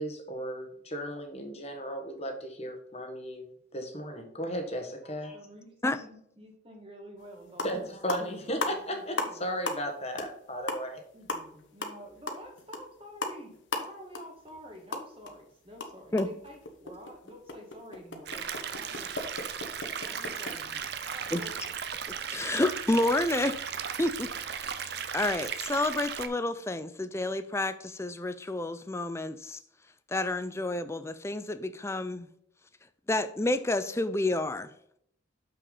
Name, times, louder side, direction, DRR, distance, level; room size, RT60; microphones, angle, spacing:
voice 1, 0.0-5.4 7.6-11.0, equal, 30° left, 4 dB, 1.3 m, -35 dB
voice 2, 5.0-9.4 11.1-19.2 20.0-21.5, equal, 25° right, 2 dB, 1.9 m, -49 dB
sound 1, 7.2-7.3 7.5-7.8 8.1-9.4 9.7-9.9 10.2-10.3 10.6-15.3 15.6-20.5, left 2 dB, 65° left, 1.2 m, -36 dB
sound 2, 18.3-26.3, right 7 dB, 55° right, 0.6 m, -36 dB
voice 3, 22.3-23.6 24.0-24.3 25.1-29.6 30.1-32.3 33.1-34.7, left 2 dB, 15° left, 12 dB, 0.4 m, -29 dB
6.9 x 6.0 x 4.0 m, 0.70 s
head